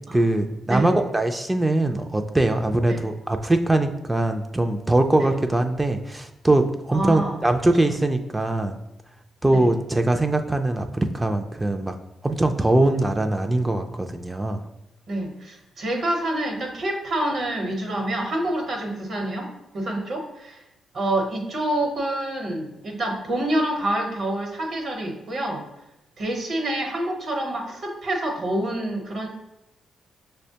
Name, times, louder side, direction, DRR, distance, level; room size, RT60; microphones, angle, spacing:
voice 1, 0.1-8.8 9.4-12.0 12.2-14.6, right 2 dB, 15° right, 5 dB, 0.3 m, -22 dB
voice 2, 6.9-7.4 9.5-9.7 15.1-19.5 19.7-20.6 20.9-25.6 26.2-29.3, right 1 dB, 65° right, 1 dB, 0.9 m, -27 dB
5.9 x 2.1 x 2.8 m, 0.88 s
supercardioid pair, 60°, 0 cm